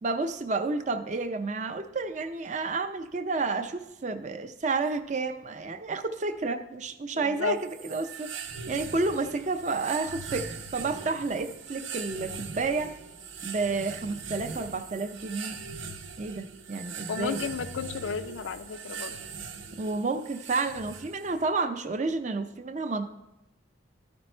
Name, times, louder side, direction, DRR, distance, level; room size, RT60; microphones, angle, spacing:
voice 1, 0.0-7.6 7.8-8.3 8.7-12.9 13.4-15.6 16.2-17.4 19.8-23.0, right 3 dB, 40° right, 9 dB, 0.5 m, -30 dB
voice 2, 7.1-7.6 17.1-19.2, left 6 dB, 75° left, 11 dB, 0.4 m, -33 dB
sound 1, 7.6-21.4, right 5 dB, 80° right, 0.7 m, -41 dB
12.5 x 5.2 x 4.4 m, 0.93 s
head